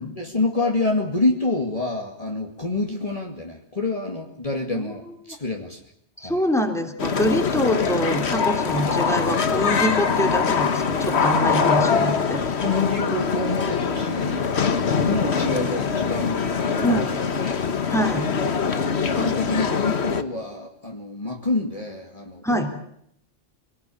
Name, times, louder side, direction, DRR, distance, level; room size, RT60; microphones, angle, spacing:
voice 1, 0.0-5.8 6.2-6.4 8.8-9.0 11.9-12.1 12.6-14.5 14.9-17.0 17.4-17.6 18.3-22.7, left 2 dB, 30° left, 1 dB, 2.4 m, -27 dB
voice 2, 6.2-12.4 16.8-17.1 17.9-18.3 22.4-22.7, equal, ahead, 3 dB, 3.2 m, -25 dB
sound 1, 7.0-20.2, left 5 dB, 60° left, 1.5 m, -23 dB
26.5 x 18.5 x 8.6 m, 0.73 s
omnidirectional pair, 1.2 m